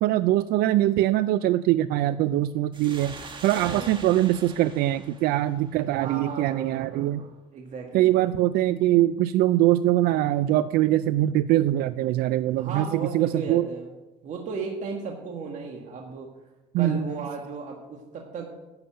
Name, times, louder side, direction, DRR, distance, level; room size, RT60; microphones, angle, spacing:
voice 1, 0.0-3.1 3.4-7.3 7.9-13.7 16.7-17.1, right 14 dB, 75° right, 14 dB, 0.4 m, -23 dB
sound 1, 2.7-6.1, right 4 dB, 30° right, 1.6 m, -42 dB
voice 2, 3.6-3.9 5.9-8.3 12.5-13.9 14.2-16.3 16.8-18.5, right 5 dB, 50° right, 1 dB, 1.7 m, -35 dB
10.5 x 7.0 x 8.7 m, 1.1 s
cardioid pair, 120°, 16 cm